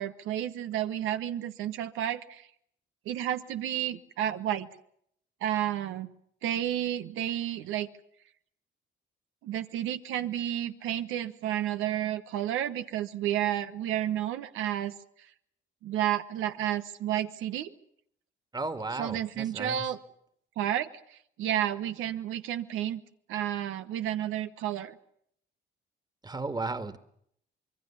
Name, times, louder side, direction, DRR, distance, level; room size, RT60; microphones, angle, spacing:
voice 1, 0.0-2.5 3.0-4.7 5.4-6.1 6.4-7.9 9.4-14.9 15.8-17.7 18.9-20.0 20.6-23.0 23.3-25.0, right 11 dB, 90° right, 10 dB, 1.2 m, -31 dB
voice 2, 18.5-19.8 26.2-27.0, right 3 dB, 20° right, 11 dB, 1.9 m, -34 dB
26.0 x 22.0 x 7.1 m, 0.69 s
cardioid pair, 90°, 20 cm